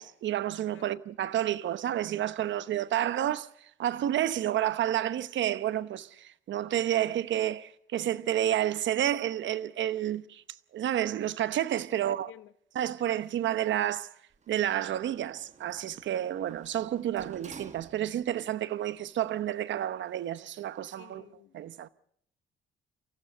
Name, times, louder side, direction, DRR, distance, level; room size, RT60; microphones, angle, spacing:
voice 1, 0.0-3.5 3.8-10.4 10.7-12.3 12.7-14.1 14.5-21.3 21.5-21.9, right 12 dB, 70° right, 0.9 m, -30 dB
Sliding door, 14.3-18.4 18.9-19.0, right 5 dB, 35° right, 1.6 m, -52 dB
voice 2, 20.9-21.6, left 14 dB, 80° left, 0.8 m, -52 dB
24.5 x 15.5 x 7.8 m
cardioid pair, 90°, 20 cm